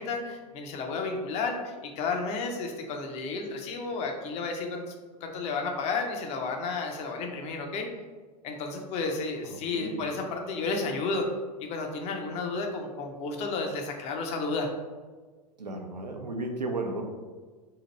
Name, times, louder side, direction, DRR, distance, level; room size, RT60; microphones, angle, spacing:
voice 1, 0.0-4.8 5.2-7.9 8.4-11.3 11.6-14.7, left 3 dB, 30° left, 3 dB, 0.6 m, -32 dB
voice 2, 9.4-10.0 15.6-17.0, right 2 dB, 85° right, 3 dB, 0.5 m, -34 dB
2.8 x 2.5 x 4.2 m, 1.4 s
figure-of-eight pair, 90°, 21 cm